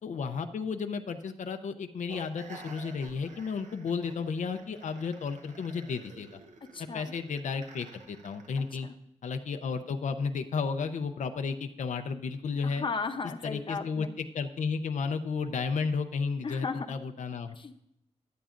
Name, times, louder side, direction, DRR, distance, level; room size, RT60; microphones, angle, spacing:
voice 1, 0.0-6.4 6.8-8.9 9.2-12.8 13.4-14.1 14.3-17.6, left 5 dB, 90° left, 7 dB, 0.6 m, -33 dB
sound 1, 2.1-8.9, right 4 dB, 80° right, 1.1 m, -51 dB
voice 2, 6.7-7.1 8.8-8.9 12.6-14.1 16.4-16.9 17.6-17.8, left 4 dB, 45° left, 8 dB, 0.8 m, -35 dB
16.0 x 11.5 x 2.5 m, 0.80 s
wide cardioid pair, 120°, 12 cm